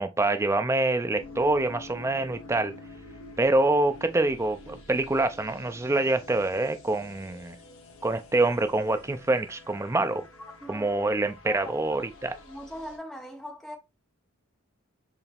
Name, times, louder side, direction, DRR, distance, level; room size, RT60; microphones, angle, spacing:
voice 1, 0.0-2.7 3.4-7.6 8.0-10.2 10.7-12.3, right 2 dB, 15° right, 0.4 m, -26 dB
sound 1, 1.2-13.0, left 2 dB, 85° left, 1.3 m, -48 dB
voice 2, 12.2-13.8, equal, ahead, 0.8 m, -40 dB
4.7 x 3.2 x 3.4 m
head